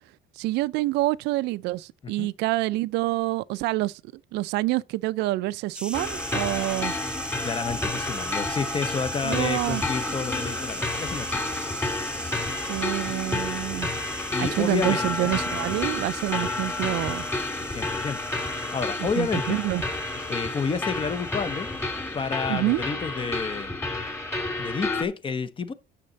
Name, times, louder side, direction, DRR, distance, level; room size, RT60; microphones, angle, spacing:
voice 1, 0.4-3.9 4.3-6.9 9.2-9.8 12.7-13.9 14.4-17.2 19.0-19.8 22.5-22.8, right 18 dB, 85° right, 0.4 m, -27 dB
sound 1, 5.7-22.0, right 1 dB, 5° right, 0.4 m, -39 dB
sound 2, 5.9-25.1, left 2 dB, 15° left, 2.9 m, -30 dB
voice 2, 7.4-11.6 14.3-15.3 17.6-19.6 20.3-21.7 22.1-23.8 24.6-25.7, left 5 dB, 30° left, 0.9 m, -30 dB
8.5 x 6.6 x 4.0 m
cardioid pair, 110°, 17 cm